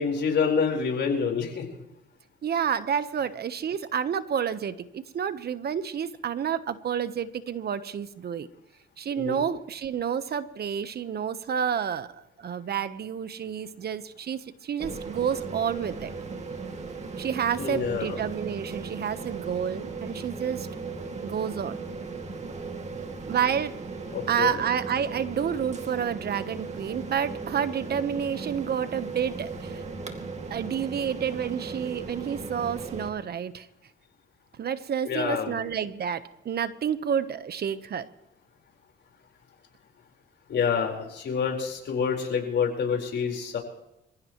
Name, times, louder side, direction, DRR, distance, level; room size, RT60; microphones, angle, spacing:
voice 1, 0.0-1.7 9.2-9.4 17.6-18.2 24.1-24.6 35.0-35.6 40.5-43.6, left 6 dB, 60° left, 1 dB, 4.6 m, -27 dB
voice 2, 2.4-8.5 9.0-16.1 17.2-20.7 21.2-21.8 23.3-23.8 24.3-29.8 30.5-33.7 34.6-38.1, right 8 dB, 55° right, 12 dB, 1.1 m, -29 dB
sound 1, 14.8-33.1, right 4 dB, 35° right, 2.4 m, -37 dB
27.0 x 16.0 x 3.2 m, 0.86 s
cardioid pair, 90°, 20 cm